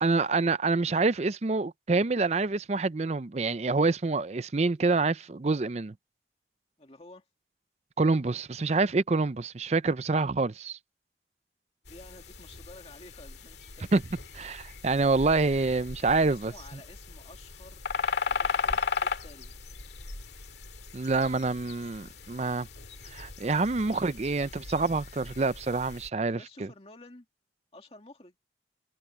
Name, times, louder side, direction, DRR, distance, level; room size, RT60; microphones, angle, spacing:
voice 1, 0.0-5.9 8.0-10.8 13.9-14.0 14.4-16.5 20.9-22.7 23.1-26.7, right 3 dB, 35° right, 0.5 m, -27 dB
voice 2, 6.8-7.3 11.9-13.9 16.0-17.8 18.3-19.7 26.3-27.3 27.7-28.4, left 2 dB, 35° left, 2.3 m, -52 dB
sound 1, 11.8-26.1, left 5 dB, 70° left, 2.1 m, -37 dB
head